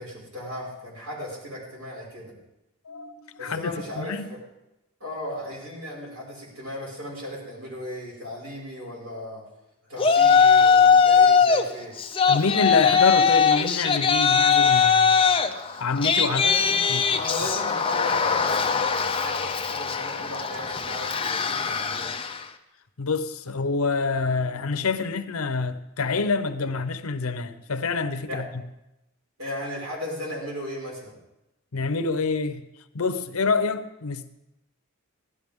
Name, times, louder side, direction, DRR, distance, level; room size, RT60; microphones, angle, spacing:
voice 1, 0.0-2.3 3.4-4.4 5.0-9.4 9.8-12.0 16.2-22.1 26.7-26.8 28.3-28.5 29.4-31.2, left 1 dB, 90° right, 5.5 m, -36 dB
voice 2, 2.8-4.3 12.3-15.2 15.8-16.4 16.9-17.0 23.0-28.5 31.7-32.6 32.9-34.3, left 4 dB, 85° left, 0.8 m, -26 dB
Yell, 10.0-11.6 12.0-22.4, left 6 dB, 25° left, 0.6 m, -20 dB
15.5 x 12.0 x 3.6 m
head